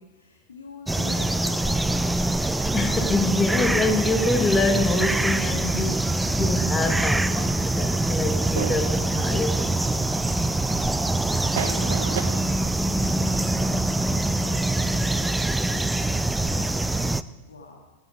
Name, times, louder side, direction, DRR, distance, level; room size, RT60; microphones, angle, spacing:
voice 1, 0.0-2.2 10.2-17.8, left 3 dB, 70° left, 2.0 m, -47 dB
sound 1, 0.9-17.2, right 2 dB, 5° right, 0.4 m, -24 dB
voice 2, 2.6-9.8, left 3 dB, 15° left, 1.5 m, -26 dB
sound 2, 8.5-12.2, right 8 dB, 55° right, 1.2 m, -37 dB
19.0 x 9.4 x 4.9 m
figure-of-eight pair, 90°, 0 cm